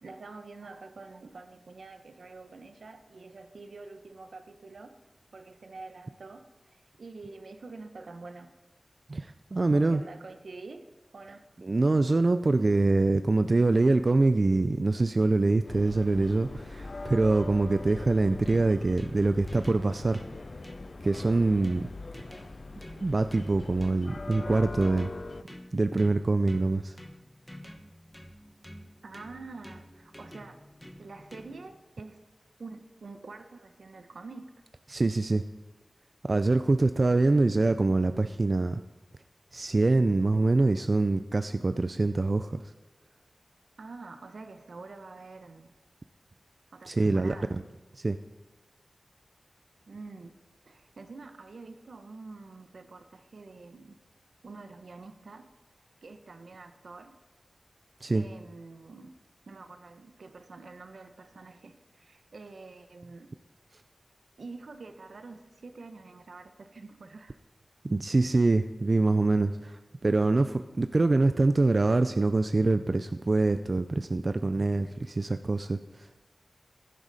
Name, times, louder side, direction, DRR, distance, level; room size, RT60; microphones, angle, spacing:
voice 1, 0.0-4.9 5.3-8.5 9.7-10.9 11.1-11.4 29.0-30.6 31.0-32.2 32.6-34.5 43.8-45.7 46.7-47.6 49.9-50.3 50.7-54.0 54.4-55.5 56.0-57.1 58.1-59.1 59.5-63.3 64.4-67.4, right 3 dB, 80° right, 8 dB, 0.9 m, -46 dB
voice 2, 9.1-10.0 11.6-20.2 21.0-21.9 23.0-25.1 25.7-27.0 34.9-35.4 36.2-38.8 39.5-42.6 46.9-47.3 48.0-48.2 58.0-58.3 67.8-75.8, right 2 dB, 45° right, 10 dB, 0.4 m, -25 dB
sound 1, 15.6-25.4, left 2 dB, 50° left, 0.5 m, -41 dB
sound 2, 18.1-31.8, equal, 10° left, 1.1 m, -50 dB
15.5 x 11.0 x 4.1 m, 1.2 s
wide cardioid pair, 80°, 0 cm